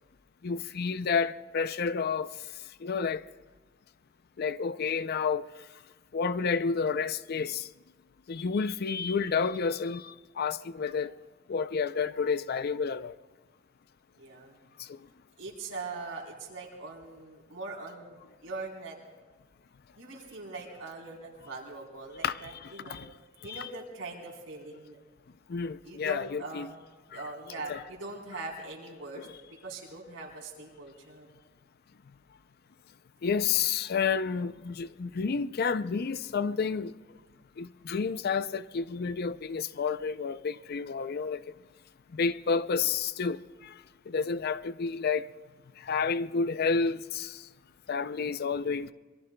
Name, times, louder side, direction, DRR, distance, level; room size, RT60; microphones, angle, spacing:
voice 1, 0.4-2.3 2.8-3.2 4.4-5.5 6.1-7.7 8.3-11.1 11.5-13.1 22.2-23.1 23.5-23.6 25.5-26.7 27.7-27.8 33.2-36.9 37.6-41.4 42.1-43.7 44.1-45.3 45.9-47.4 47.9-48.9, left 5 dB, 55° left, 0.4 m, -30 dB
voice 2, 14.2-14.6 15.4-19.0 20.0-23.0 23.4-25.0 25.8-26.7 27.1-31.3 48.3-48.5, right 3 dB, 85° right, 3.8 m, -42 dB
26.0 x 23.0 x 2.2 m
head